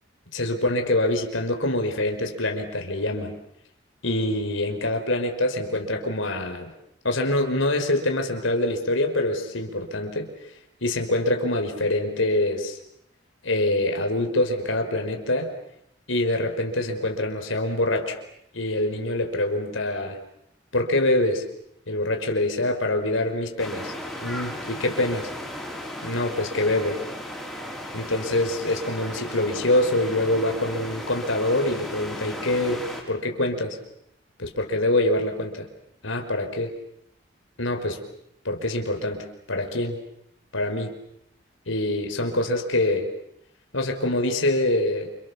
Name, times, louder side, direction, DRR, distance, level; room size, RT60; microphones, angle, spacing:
voice 1, 0.3-3.4 4.0-6.7 7.0-10.3 10.8-12.8 13.4-15.5 16.1-18.2 18.5-20.2 20.7-21.4 21.9-23.9 24.2-25.3 26.0-27.0 27.9-33.8 34.4-35.7 36.0-36.7 37.6-38.0 38.5-40.0 40.5-40.9 41.7-43.1 43.7-45.1, left 1 dB, 85° left, 4 dB, 5.2 m, -25 dB
sound 1, 23.6-33.0, left 1 dB, ahead, 6.2 m, -36 dB
29.0 x 29.0 x 7.2 m, 0.75 s
head